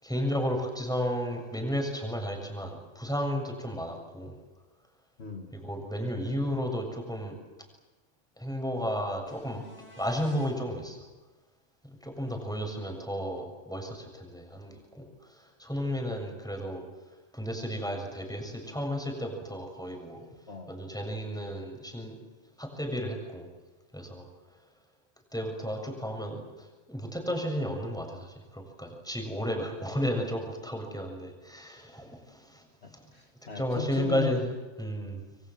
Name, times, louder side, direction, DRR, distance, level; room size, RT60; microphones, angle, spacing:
voice 1, 0.0-4.4 5.5-7.4 8.4-9.6 10.0-11.0 11.8-15.1 15.6-16.8 17.3-20.2 20.7-22.2 22.6-23.5 23.9-24.3 25.3-32.6 33.6-35.2, equal, 5° left, 3 dB, 7.1 m, -33 dB
voice 2, 5.2-5.5 20.5-20.8 32.8-34.4, left 6 dB, 50° left, 3 dB, 2.4 m, -37 dB
sound 1, 9.3-10.5 14.4-14.5, left 1 dB, 80° left, 6.1 m, -52 dB
27.0 x 24.5 x 7.8 m, 1.2 s
omnidirectional pair, 1.4 m